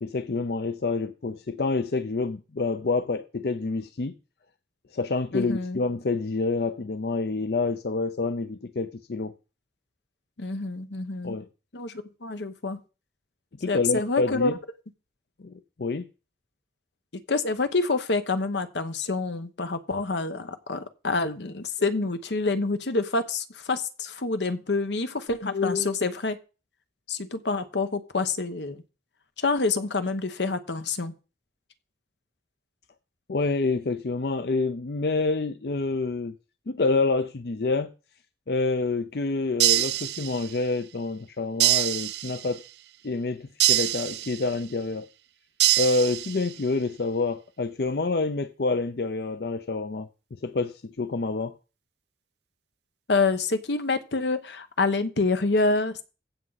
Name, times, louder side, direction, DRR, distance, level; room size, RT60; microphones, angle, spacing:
voice 1, 0.0-4.1 4.9-9.3 11.2-11.5 13.6-14.5 15.4-16.1 33.3-36.3 36.7-37.9 38.5-42.6 43.0-45.1 45.8-50.1 50.4-51.5, left 3 dB, 65° left, 0.6 m, -27 dB
voice 2, 5.3-5.8 10.4-11.4 11.7-12.8 13.7-14.5 17.3-26.4 27.1-28.8 29.4-31.1 53.1-56.0, left 3 dB, 85° left, 1.1 m, -27 dB
sound 1, 39.6-40.7 41.6-42.7 43.6-44.7 45.6-46.6, right 16 dB, 75° right, 0.4 m, -25 dB
15.5 x 5.9 x 4.1 m
head